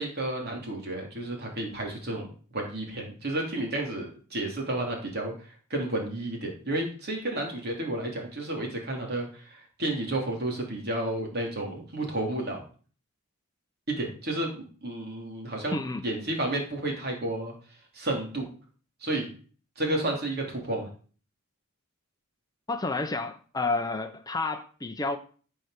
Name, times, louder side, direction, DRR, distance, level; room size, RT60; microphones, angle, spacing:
voice 1, 0.0-2.3 2.5-12.6 13.9-17.5 17.9-18.5 19.0-19.3 19.8-20.9, right 1 dB, 45° right, 3.5 m, -31 dB
voice 2, 22.7-25.2, left 3 dB, 15° left, 0.7 m, -30 dB
14.0 x 5.7 x 6.6 m
head